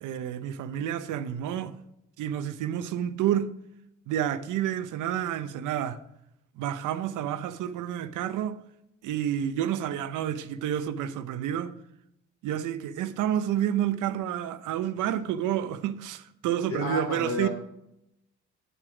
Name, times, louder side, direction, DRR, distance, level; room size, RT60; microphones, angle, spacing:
voice 1, 0.0-1.8 2.2-3.5 4.1-6.0 6.6-8.6 9.0-11.8 12.4-17.5, right 10 dB, 85° right, 0.7 m, -29 dB
voice 2, 16.7-17.5, left 3 dB, 70° left, 3.5 m, -31 dB
8.2 x 7.7 x 4.9 m
cardioid pair, 90°, 30 cm